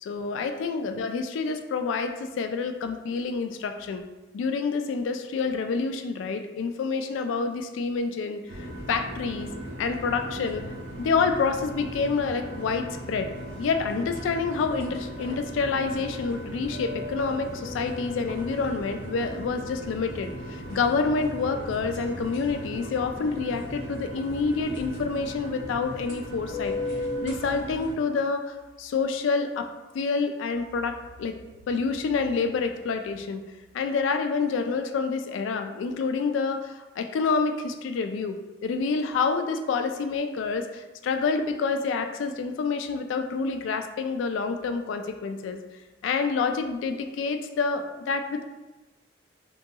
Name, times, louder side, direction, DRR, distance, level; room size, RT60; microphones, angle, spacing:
voice 1, 0.0-4.0 4.3-9.5 9.8-10.6 11.0-13.3 13.6-29.7 29.9-31.3 31.7-33.4 33.7-38.4 38.6-45.6 46.0-48.4, left 4 dB, 90° left, 7 dB, 0.3 m, -28 dB
sound 1, 8.5-27.9, equal, 80° right, 1.0 m, -37 dB
3.7 x 2.7 x 2.3 m, 1.1 s
head